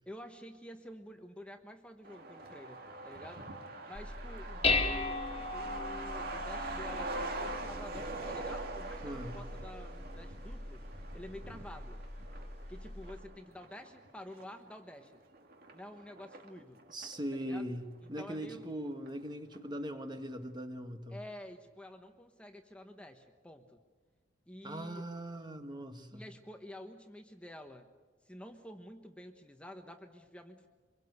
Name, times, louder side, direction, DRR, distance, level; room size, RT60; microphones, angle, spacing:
voice 1, 0.1-3.5 3.9-5.2 5.5-10.9 11.1-12.0 12.7-15.1 15.7-16.8 17.3-17.7 18.2-18.7 21.1-23.8 24.5-25.1 26.1-27.9 28.2-30.7, left 1 dB, 5° left, 5 dB, 1.2 m, -49 dB
Truck, 2.0-17.2 17.6-17.7 17.9-18.8 19.1-19.2 19.5-19.9, right 2 dB, 55° right, 2.3 m, -44 dB
Dishes pots and pans, 3.9-13.2, left 3 dB, 30° left, 2.0 m, -38 dB
voice 2, 9.0-9.4 16.9-21.2 24.6-26.2, equal, 25° right, 7 dB, 1.5 m, -40 dB
25.5 x 22.5 x 8.1 m, 1.3 s
head